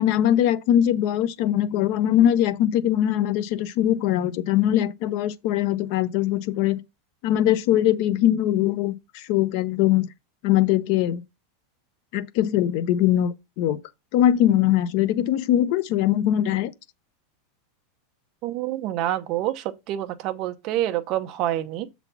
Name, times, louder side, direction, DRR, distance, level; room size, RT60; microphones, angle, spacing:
voice 1, 0.0-6.8 7.2-10.1 10.4-11.2 12.1-13.8 14.1-16.7, left 11 dB, 45° left, 0.7 m, -21 dB
voice 2, 18.4-21.9, right 13 dB, 30° right, 0.8 m, -27 dB
7.1 x 4.1 x 5.6 m
supercardioid pair, 175°, 0 cm